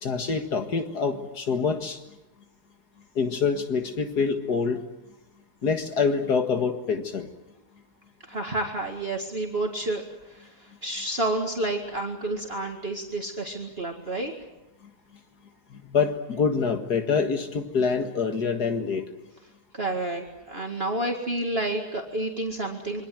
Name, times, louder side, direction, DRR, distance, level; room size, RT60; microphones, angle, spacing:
voice 1, 0.0-2.0 3.2-4.8 5.6-7.3 15.7-19.0, left 5 dB, 75° left, 6 dB, 2.3 m, -26 dB
voice 2, 8.2-14.3 19.7-23.1, right 2 dB, 35° right, 2 dB, 2.2 m, -30 dB
27.0 x 23.5 x 7.8 m, 0.94 s
omnidirectional pair, 1.7 m